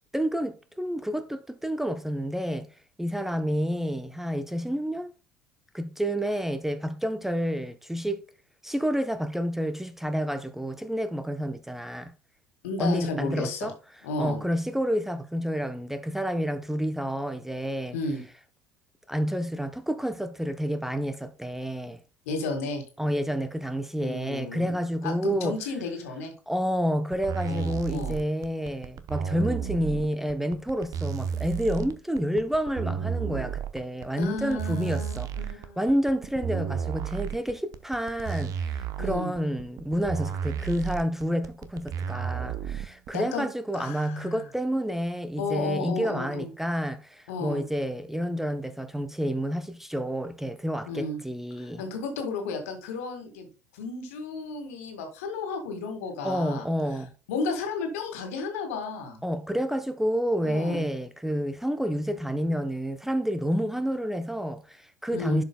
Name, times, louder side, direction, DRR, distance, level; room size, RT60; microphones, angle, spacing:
voice 1, 0.1-2.7 3.0-5.1 5.7-8.2 8.6-12.1 12.8-13.7 14.2-18.0 19.1-22.0 23.0-25.6 26.5-51.8 56.2-57.1 59.2-65.4, equal, 5° right, 0.6 m, -29 dB
voice 2, 12.6-13.7 14.0-14.4 17.9-18.2 22.3-22.8 24.0-24.7 25.0-26.3 27.5-28.2 34.2-35.8 39.0-39.3 43.1-43.5 43.7-44.4 45.4-46.5 47.3-47.6 50.9-51.2 51.6-53.5 53.7-56.7 57.3-59.2 60.4-60.8 65.1-65.4, left 3 dB, 70° left, 1.9 m, -33 dB
sound 1, 27.1-43.1, right 7 dB, 45° right, 0.8 m, -32 dB
11.0 x 5.1 x 2.2 m
figure-of-eight pair, 65°, 8 cm